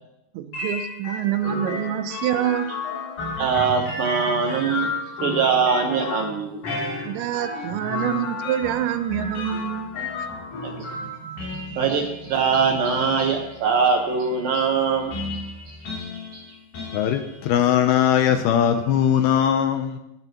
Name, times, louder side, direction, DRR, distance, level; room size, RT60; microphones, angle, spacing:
voice 1, 0.3-2.7 7.0-9.9, right 10 dB, 85° right, 10 dB, 3.1 m, -26 dB
sound 1, 0.5-19.2, left 3 dB, 50° left, 4.3 m, -33 dB
voice 2, 3.4-4.9 5.2-6.6 10.6-15.1 15.7-15.8 16.3-16.4, right 5 dB, 65° right, 2 dB, 2.6 m, -23 dB
voice 3, 16.9-20.0, left 9 dB, 75° left, 7 dB, 2.4 m, -20 dB
18.0 x 16.5 x 3.0 m, 0.88 s
omnidirectional pair, 5.0 m